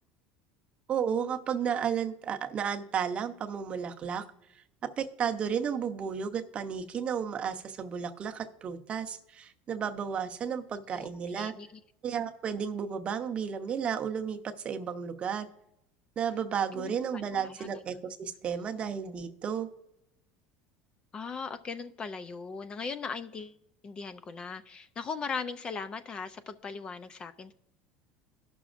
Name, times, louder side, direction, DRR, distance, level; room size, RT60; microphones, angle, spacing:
voice 1, 0.9-4.3 4.8-11.5 12.0-15.5 16.2-19.7, right 7 dB, 30° right, 6 dB, 0.8 m, -33 dB
voice 2, 11.4-11.7 16.7-17.7 21.1-23.6 23.8-27.5, left 5 dB, 25° left, 12 dB, 0.4 m, -39 dB
18.0 x 6.1 x 2.5 m, 0.83 s
supercardioid pair, 140°, 4 cm